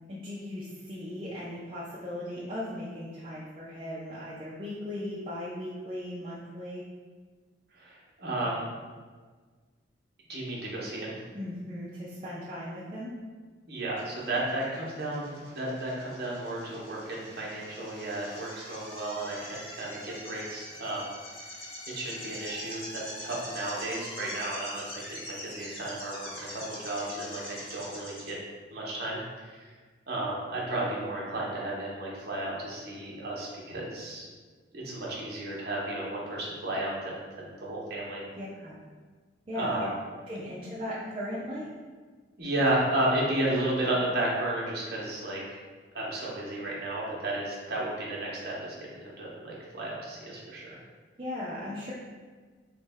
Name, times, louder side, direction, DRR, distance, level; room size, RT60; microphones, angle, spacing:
voice 1, 0.1-6.8 11.3-13.1 38.4-38.8 39.5-39.9 40.3-41.7 51.2-51.9, left 1 dB, 30° right, -8 dB, 0.4 m, -37 dB
voice 2, 7.7-8.6 10.3-11.1 13.7-21.1 21.4-21.7 21.9-28.3 28.7-29.7 30.1-34.3 34.7-38.3 39.5-39.9 42.4-45.6 45.9-50.8, right 1 dB, 55° right, -5 dB, 0.7 m, -33 dB
sound 1, 14.0-28.3, left 1 dB, 30° left, 0.9 m, -43 dB
3.1 x 2.1 x 3.3 m, 1.5 s
head